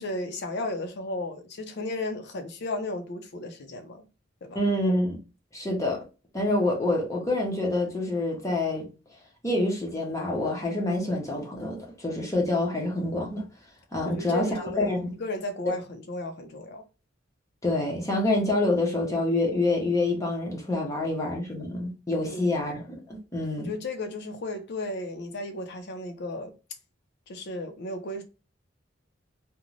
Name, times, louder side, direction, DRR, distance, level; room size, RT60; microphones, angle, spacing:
voice 1, 0.0-4.1 4.4-4.6 14.0-16.8 22.2-22.6 23.6-26.5 27.3-28.2, left 2 dB, 60° left, 0.6 m, -34 dB
voice 2, 4.5-5.2 5.5-6.0 6.3-8.9 9.4-13.5 13.9-15.1 17.6-23.7, left 2 dB, 15° left, 0.7 m, -27 dB
2.5 x 2.1 x 3.0 m
head